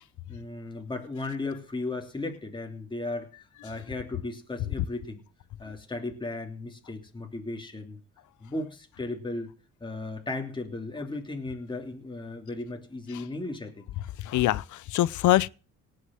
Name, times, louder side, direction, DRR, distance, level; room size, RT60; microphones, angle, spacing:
voice 1, 0.3-3.3 3.6-5.2 5.6-8.0 8.4-9.5 9.8-13.9, left 2 dB, 15° left, 3.1 m, -36 dB
voice 2, 14.2-15.5, left 14 dB, 75° left, 0.7 m, -24 dB
18.5 x 6.8 x 7.8 m
cardioid pair, 90°, 30 cm